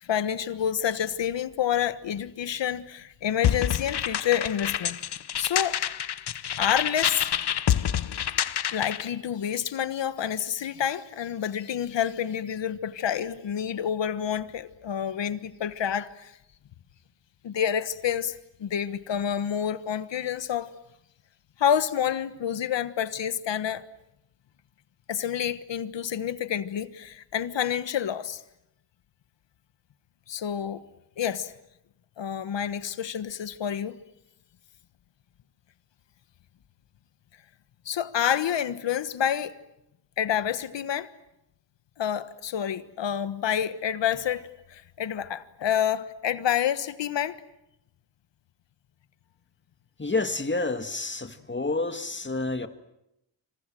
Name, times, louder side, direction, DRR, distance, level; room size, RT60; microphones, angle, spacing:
voice 1, 0.0-5.0 5.4-5.8 6.6-7.3 8.7-16.3 17.4-20.7 21.6-23.8 25.1-28.4 30.3-30.8 31.2-31.5 32.2-34.0 37.8-39.5 40.2-41.1 42.0-47.4, left 9 dB, 85° left, 1.4 m, -28 dB
sound 1, 3.4-9.1, left 9 dB, 65° left, 1.1 m, -27 dB
voice 2, 50.0-52.7, left 3 dB, 25° left, 2.1 m, -29 dB
27.0 x 26.0 x 7.7 m
cardioid pair, 85°, 43 cm